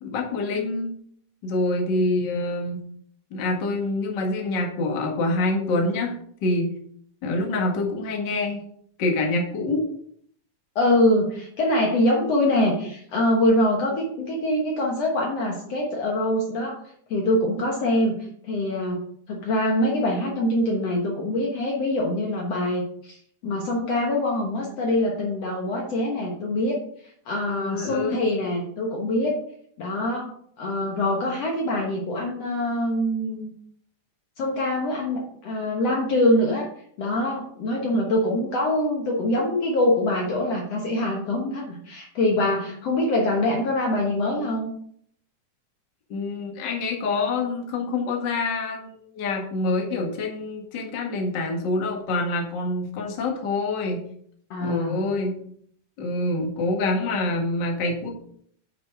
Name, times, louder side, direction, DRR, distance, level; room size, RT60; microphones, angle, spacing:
voice 1, 0.0-1.0 1.4-2.8 3.3-6.7 7.2-8.6 9.0-9.9 27.5-28.2 46.1-54.0 54.6-55.3 56.0-58.2, left 2 dB, 40° left, 0 dB, 1.9 m, -26 dB
voice 2, 10.8-16.8 17.1-18.2 18.4-19.0 19.3-26.8 27.3-29.4 29.8-30.3 30.6-33.5 34.4-36.7 37.0-44.7 54.5-55.0, left 1 dB, 55° left, -1 dB, 2.2 m, -24 dB
9.1 x 6.0 x 4.8 m, 0.63 s
omnidirectional pair, 3.9 m